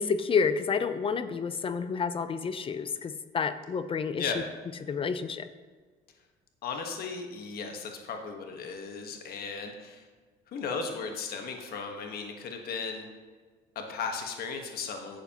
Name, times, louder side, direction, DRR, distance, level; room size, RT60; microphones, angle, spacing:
voice 1, 0.0-4.3 4.8-5.5, left 5 dB, 30° left, 12 dB, 0.6 m, -29 dB
voice 2, 6.6-10.0 10.5-13.1 13.7-15.2, left 5 dB, 65° left, 3 dB, 1.3 m, -36 dB
11.5 x 8.0 x 2.9 m, 1.4 s
cardioid pair, 110°, 17 cm